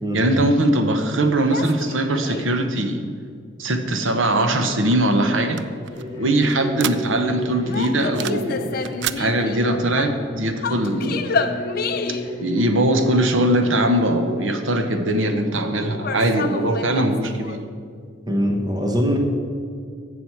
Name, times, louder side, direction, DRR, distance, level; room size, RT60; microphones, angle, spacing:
voice 1, 0.1-3.0 3.6-5.6 6.2-8.7 9.2-11.4 12.4-17.6, right 1 dB, 75° right, 6 dB, 1.0 m, -21 dB
sound 1, 1.5-2.6 7.6-10.2 10.6-12.4 15.9-17.6, left 4 dB, 45° left, 0.5 m, -29 dB
sound 2, 4.9-7.4 7.7-8.5 8.8-9.2, right 11 dB, 60° right, 0.3 m, -31 dB
sound 3, 5.9-13.8, left 1 dB, 25° left, 3.1 m, -31 dB
voice 2, 18.3-19.2, equal, 20° right, 1 dB, 1.2 m, -22 dB
15.5 x 6.2 x 4.6 m, 2.2 s
head